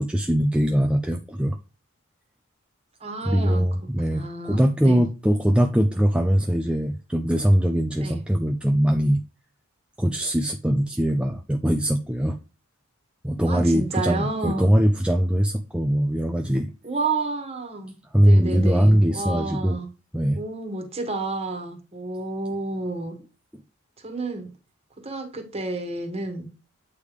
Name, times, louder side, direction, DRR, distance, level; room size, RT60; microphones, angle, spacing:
voice 1, 0.0-1.6 3.3-9.2 10.0-12.4 13.2-16.7 18.1-19.8 20.1-20.4, equal, 5° right, 4 dB, 0.4 m, -21 dB
voice 2, 3.0-3.6 4.0-5.1 8.0-8.2 13.4-14.7 16.8-17.9 18.2-19.9 20.3-23.1 24.0-24.5 25.0-26.5, right 3 dB, 30° right, 3 dB, 1.5 m, -30 dB
8.3 x 3.5 x 5.0 m, 0.32 s
head